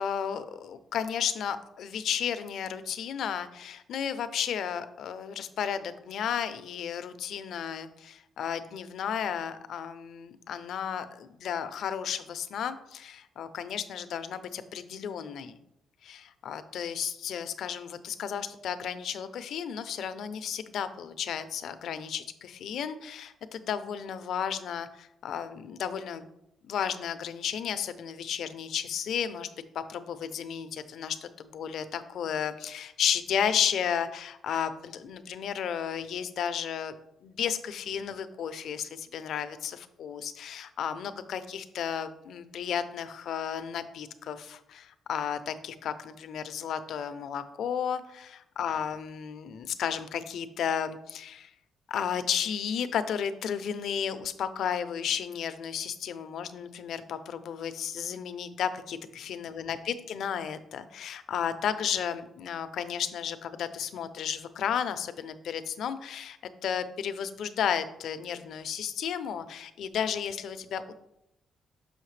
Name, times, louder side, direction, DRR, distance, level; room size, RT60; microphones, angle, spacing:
voice 1, 0.0-15.6 16.0-26.2 26.6-29.5 29.7-36.9 37.2-51.5 51.9-66.4 66.6-70.9, left 8 dB, 70° left, 11 dB, 0.5 m, -33 dB
6.4 x 5.7 x 3.2 m, 0.82 s
cardioid pair, 90°, 0 cm